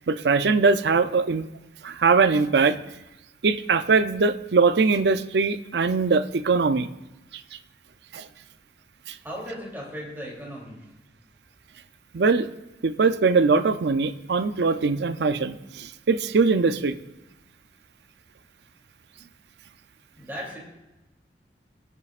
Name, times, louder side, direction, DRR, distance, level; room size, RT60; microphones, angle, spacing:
voice 1, 0.1-1.5 1.8-2.8 3.4-6.9 8.1-8.3 9.1-9.2 12.1-12.5 12.8-17.0, right 4 dB, 70° right, 12 dB, 0.5 m, -21 dB
voice 2, 9.2-10.8 20.1-20.6, equal, 10° right, -4 dB, 3.0 m, -36 dB
18.5 x 8.4 x 2.5 m, 1.0 s
head